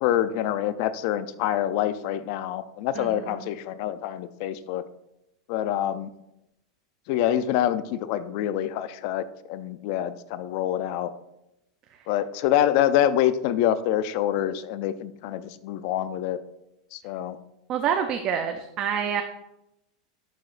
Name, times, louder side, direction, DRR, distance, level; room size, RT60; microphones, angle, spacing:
voice 1, 0.0-4.8 5.5-6.1 7.1-11.1 12.1-16.4 16.9-17.4, left 11 dB, 40° left, 14 dB, 0.4 m, -26 dB
voice 2, 17.7-19.2, right 8 dB, 25° right, 5 dB, 0.4 m, -27 dB
11.5 x 4.9 x 2.5 m, 0.87 s
supercardioid pair, 175°, 3 cm